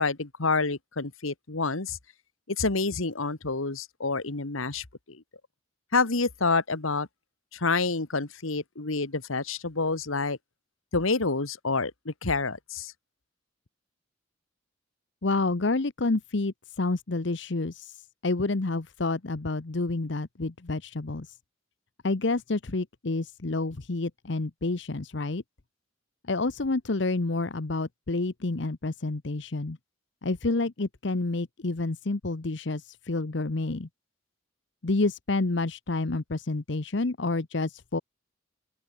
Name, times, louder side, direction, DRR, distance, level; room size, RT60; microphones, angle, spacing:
voice 1, 0.0-2.0 2.5-5.2 5.9-7.1 7.5-10.4 10.9-12.9, left 3 dB, 85° left, 1.7 m, -28 dB
voice 2, 15.2-21.3 22.0-25.4 26.3-29.8 30.2-33.9 34.8-38.0, left 2 dB, 60° left, 0.9 m, -29 dB
open air
head